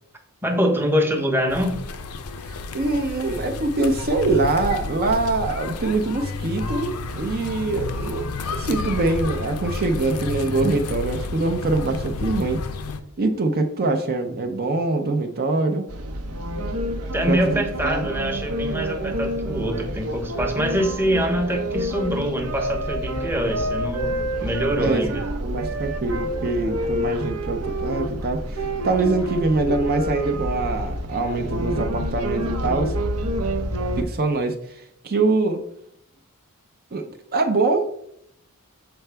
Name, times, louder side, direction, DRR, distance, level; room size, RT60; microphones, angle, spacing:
voice 1, 0.4-1.8 17.1-25.2, equal, 10° right, 2 dB, 0.8 m, -24 dB
sound 1, 1.5-13.0, left 3 dB, 80° left, 0.6 m, -31 dB
voice 2, 2.5-12.6 13.2-15.9 17.2-18.1 24.8-25.0 25.4-32.9 34.0-35.6 36.9-37.8, right 3 dB, 45° right, 4 dB, 0.6 m, -24 dB
sound 2, 15.9-34.0, right 1 dB, 75° right, 0.7 m, -28 dB
6.9 x 4.5 x 3.3 m, 0.72 s
head